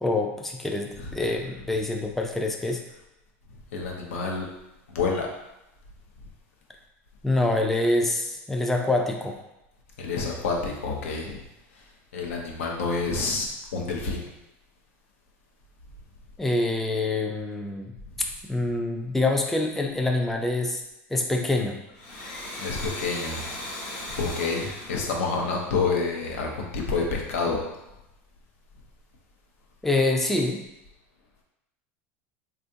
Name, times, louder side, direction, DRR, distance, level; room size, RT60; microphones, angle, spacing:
voice 1, 0.0-2.8 7.2-9.4 16.4-17.9 18.5-20.8 21.1-21.8 29.8-30.6, left 2 dB, 5° left, 2 dB, 0.3 m, -25 dB
voice 2, 3.7-4.5 4.9-5.3 10.0-11.4 11.7-14.3 22.6-23.6 24.2-27.6, left 4 dB, 90° left, 0 dB, 0.7 m, -28 dB
Domestic sounds home sounds, 21.9-26.4, left 1 dB, 70° left, 1.1 m, -38 dB
3.5 x 2.4 x 2.7 m, 0.91 s
supercardioid pair, 115°, 7 cm